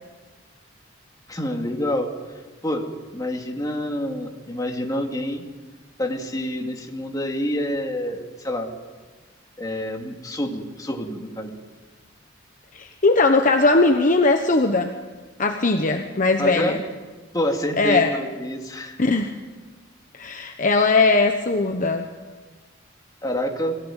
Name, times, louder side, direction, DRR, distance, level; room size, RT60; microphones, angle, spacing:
voice 1, 1.3-2.1 2.6-2.9 3.1-5.4 6.0-8.7 9.6-11.6 16.4-16.8 17.3-19.1 23.2-23.7, left 1 dB, 20° left, 2 dB, 2.5 m, -27 dB
voice 2, 12.7-14.9 15.4-16.8 17.8-18.1 19.0-19.3 20.2-22.1, left 3 dB, 40° left, 5 dB, 1.1 m, -19 dB
22.5 x 16.5 x 9.1 m, 1.4 s
head